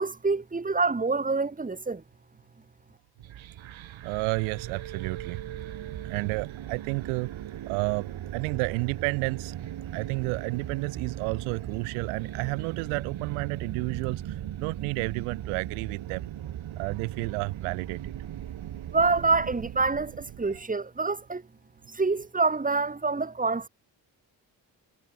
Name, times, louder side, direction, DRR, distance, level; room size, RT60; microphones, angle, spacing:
voice 1, 0.0-2.0 18.9-21.4 21.9-23.7, right 4 dB, 15° right, 1.3 m, -26 dB
sound 1, 3.2-20.6, right 11 dB, 65° right, 2.0 m, -38 dB
voice 2, 4.0-5.5 5.9-7.3 7.7-9.5 9.9-16.3 16.8-18.1, right 34 dB, 90° right, 1.0 m, -31 dB
hypercardioid pair, 40°, 50 cm